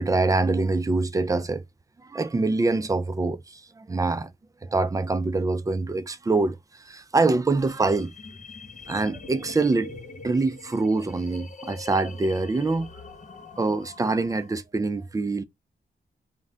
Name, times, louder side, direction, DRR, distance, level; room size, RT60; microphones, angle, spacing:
voice 1, 0.0-1.6 2.0-4.3 4.6-8.1 8.9-10.0 10.2-12.9 13.6-15.4, right 3 dB, 15° right, 0.4 m, -25 dB
sound 1, 7.6-14.6, left 3 dB, 35° left, 0.5 m, -44 dB
2.2 x 2.1 x 3.6 m
cardioid pair, 55°, 20 cm